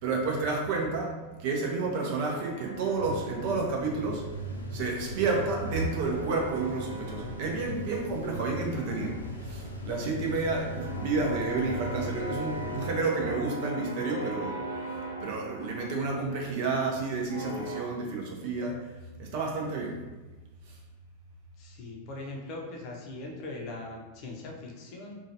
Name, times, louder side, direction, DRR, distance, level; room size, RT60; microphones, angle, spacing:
voice 1, 0.0-4.2 4.7-14.7 15.2-18.9 19.2-20.0 20.7-20.8, right 3 dB, 45° right, 0 dB, 0.6 m, -30 dB
sound 1, 1.9-4.5 4.7-8.4 8.7-17.8, right 1 dB, 85° right, 0.7 m, -41 dB
sound 2, 2.9-12.9, left 1 dB, 80° left, 0.4 m, -39 dB
voice 2, 21.6-25.2, left 2 dB, 40° left, -1 dB, 0.6 m, -40 dB
3.0 x 2.3 x 2.7 m, 1.2 s
figure-of-eight pair, 90°, 0 cm